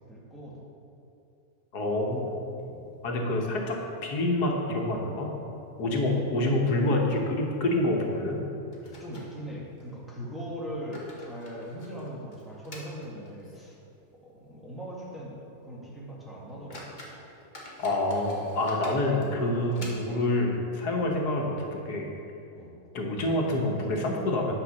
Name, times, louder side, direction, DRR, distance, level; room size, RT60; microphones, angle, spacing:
voice 1, 0.1-0.7 2.6-2.9 8.8-13.8 14.2-17.0 20.9-21.1 22.6-22.8, equal, ahead, -6 dB, 1.9 m, -40 dB
voice 2, 1.7-2.4 3.0-3.8 4.0-5.3 5.8-8.4 17.8-22.1 22.9-24.5, left 1 dB, 85° left, 0 dB, 1.7 m, -27 dB
sound 1, 2.0-3.0 3.3-3.4 3.7-3.8 4.4-4.9 5.2-5.4 6.0-6.2 6.5-6.6 8.0-8.1 8.7-9.9 10.6-13.8 14.1-14.2 14.8-14.9 15.3-15.5 16.0-16.1 16.5-20.4, left 1 dB, 30° left, 1.5 m, -48 dB
10.0 x 5.9 x 6.4 m, 2.7 s
omnidirectional pair, 1.7 m